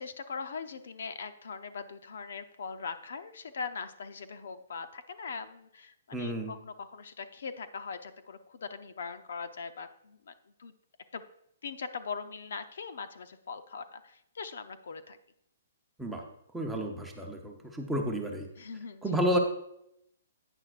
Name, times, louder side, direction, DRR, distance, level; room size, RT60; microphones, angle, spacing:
voice 1, 0.0-10.3 10.6-10.7 11.1-11.2 11.6-15.2 18.6-19.1, left 5 dB, 70° left, 10 dB, 0.6 m, -41 dB
voice 2, 6.1-6.5 16.0-16.2 16.5-18.5 19.0-19.4, equal, 5° right, 0 dB, 0.9 m, -31 dB
10.5 x 9.0 x 2.5 m, 0.76 s
hypercardioid pair, 165°, 0 cm